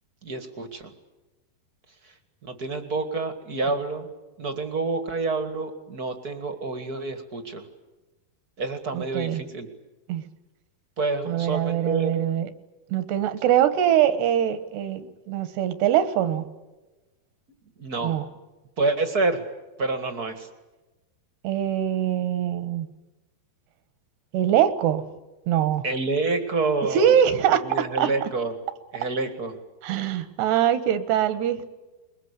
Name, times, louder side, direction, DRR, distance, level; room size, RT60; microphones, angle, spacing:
voice 1, 0.2-0.9 2.4-4.1 4.4-7.6 8.6-9.7 11.0-12.2 17.8-18.2 18.8-19.4 19.8-20.5 25.8-27.1 27.5-28.5 28.9-29.6, right 3 dB, 40° right, 8 dB, 1.4 m, -28 dB
voice 2, 8.9-9.4 10.1-10.2 11.3-12.5 12.9-16.5 18.0-18.3 21.4-22.9 24.3-25.0 25.5-25.8 26.9-28.3 29.8-31.7, right 10 dB, 80° right, 13 dB, 3.4 m, -23 dB
22.5 x 22.0 x 9.9 m, 1.1 s
omnidirectional pair, 4.7 m